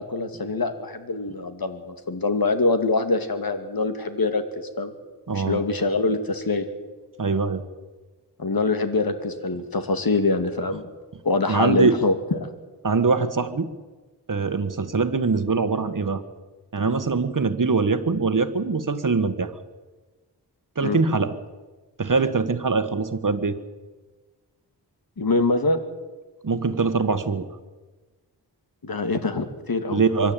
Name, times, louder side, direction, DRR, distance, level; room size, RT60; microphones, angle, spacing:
voice 1, 0.0-4.9 5.3-6.7 8.4-10.9 11.2-12.5 20.8-21.0 25.2-25.8 28.8-30.0, left 3 dB, 55° left, 8 dB, 2.4 m, -24 dB
voice 2, 5.3-5.6 7.2-7.6 11.5-12.0 12.8-13.7 14.3-16.2 16.7-19.5 20.7-21.3 22.0-23.6 26.4-27.5 29.9-30.3, right 4 dB, 50° right, 10 dB, 1.7 m, -23 dB
24.5 x 12.0 x 9.2 m, 1.3 s
wide cardioid pair, 70°, 42 cm